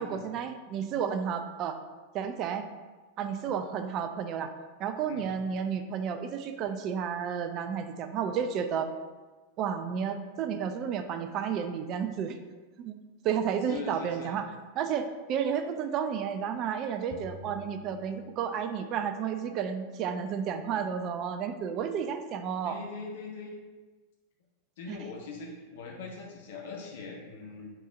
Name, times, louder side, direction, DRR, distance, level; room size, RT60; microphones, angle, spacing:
voice 1, 0.0-1.8 2.1-2.6 3.2-4.5 4.8-8.9 9.6-12.4 12.8-13.0 13.2-14.5 14.8-22.8 24.9-25.0, right 7 dB, 35° right, 8 dB, 0.5 m, -32 dB
voice 2, 13.7-14.4 22.6-23.5 24.8-27.7, left 4 dB, 55° left, -1 dB, 1.1 m, -41 dB
sound 1, 17.1-18.9, left 1 dB, 35° left, 1.1 m, -48 dB
4.5 x 4.3 x 5.8 m, 1.3 s
figure-of-eight pair, 90°, 0 cm